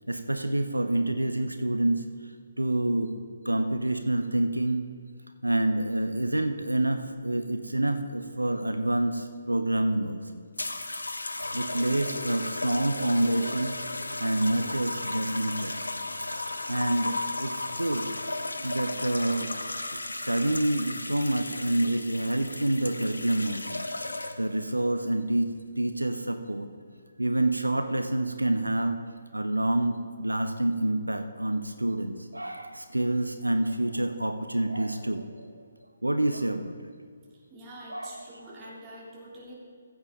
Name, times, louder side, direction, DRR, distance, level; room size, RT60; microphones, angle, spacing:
voice 1, 0.1-3.2 3.4-4.9 5.4-10.4 11.5-13.8 14.2-16.0 16.7-18.1 18.6-19.5 19.9-23.9 24.4-26.7 27.2-29.0 29.3-35.6 36.0-36.9 37.9-38.5, right 1 dB, 85° right, 7 dB, 0.7 m, -28 dB
sound 1, 10.6-24.6 25.5-25.8, left 2 dB, 75° left, 0.8 m, -35 dB
voice 2, 37.5-39.5, right 1 dB, 20° right, -6 dB, 3.0 m, -45 dB
15.0 x 8.1 x 3.8 m, 2.1 s
figure-of-eight pair, 140°, 0 cm